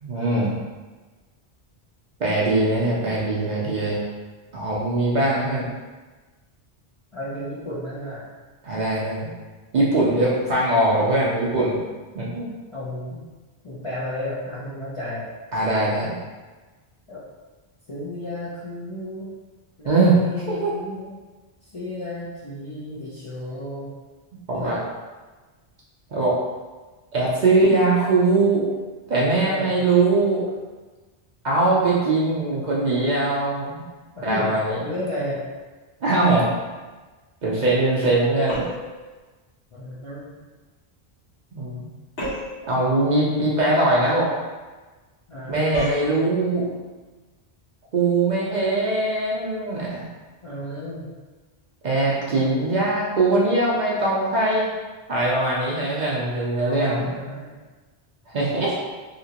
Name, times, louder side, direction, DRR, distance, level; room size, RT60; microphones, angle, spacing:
voice 1, 0.0-0.5 2.2-4.0 4.5-5.6 8.6-9.3 9.7-11.8 12.1-12.5 15.5-16.2 19.8-20.2 20.5-20.7 24.5-24.8 26.1-26.4 27.1-28.7 29.1-30.4 31.4-33.8 34.2-34.8 36.0-36.5 37.4-38.7 41.5-41.9 42.7-44.3 45.5-46.7 47.9-50.1 51.8-54.7 55.1-57.0 58.3-58.8, right 2 dB, 50° right, -5 dB, 0.6 m, -21 dB
voice 2, 7.1-8.3 12.7-13.2 13.6-15.3 17.1-17.2 17.9-19.3 19.8-21.1 21.6-23.9 24.5-24.8 29.4-29.7 34.1-34.5 34.8-35.5 39.7-40.4 43.2-43.6 45.3-45.5 50.4-51.1 56.6-57.6, left 1 dB, 40° left, -8 dB, 0.6 m, -33 dB
sound 1, 38.5-39.0 42.2-42.6 45.7-46.1, left 1 dB, 70° left, 1.1 m, -29 dB
2.9 x 2.8 x 2.8 m, 1.3 s
omnidirectional pair, 1.1 m